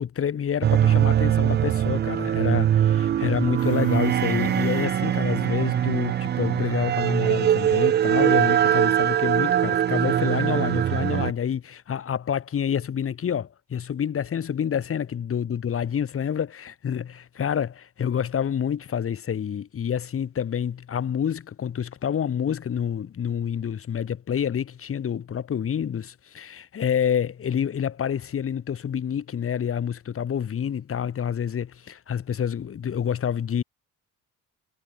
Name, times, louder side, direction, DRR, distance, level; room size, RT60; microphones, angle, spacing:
voice 1, 0.0-33.6, left 8 dB, 45° left, 3.4 m, -28 dB
sound 1, 0.6-11.3, right 10 dB, 35° right, 0.4 m, -22 dB
sound 2, 3.6-8.1, left 12 dB, 70° left, 3.5 m, -47 dB
cardioid pair, 130°, 31 cm